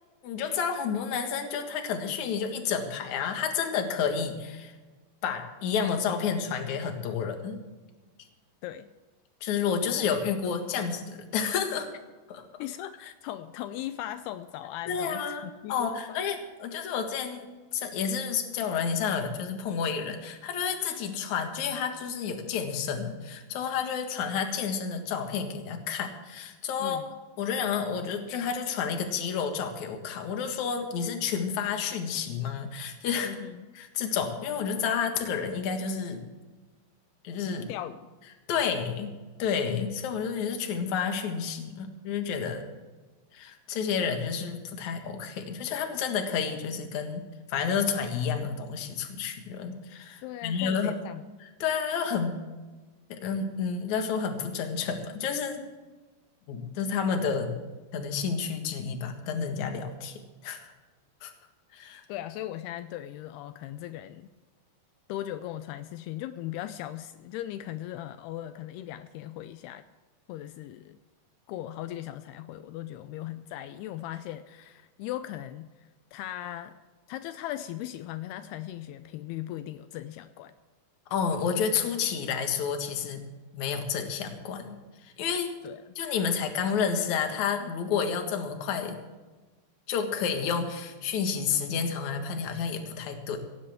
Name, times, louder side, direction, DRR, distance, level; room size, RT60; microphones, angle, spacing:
voice 1, 0.2-4.7 5.2-7.6 9.4-11.9 12.3-12.4 14.9-15.4 15.7-27.0 27.4-33.3 33.7-36.3 37.2-37.7 38.5-39.1 39.4-42.6 43.3-51.0 51.6-52.4 53.1-55.6 56.5-57.6 57.9-60.7 61.2-61.3 61.7-62.0 81.1-83.2 83.5-84.8 85.0-85.5 86.0-89.0 89.9-93.4, left 6 dB, 55° left, 5 dB, 2.2 m, -30 dB
voice 2, 12.6-16.2 26.8-27.2 33.2-33.7 37.7-38.0 50.2-51.2 62.1-64.3 65.1-69.8 70.3-71.0 71.5-76.8 77.1-80.5 85.6-85.9, left 13 dB, 90° left, 11 dB, 2.3 m, -38 dB
17.0 x 16.5 x 3.6 m, 1.3 s
omnidirectional pair, 5.3 m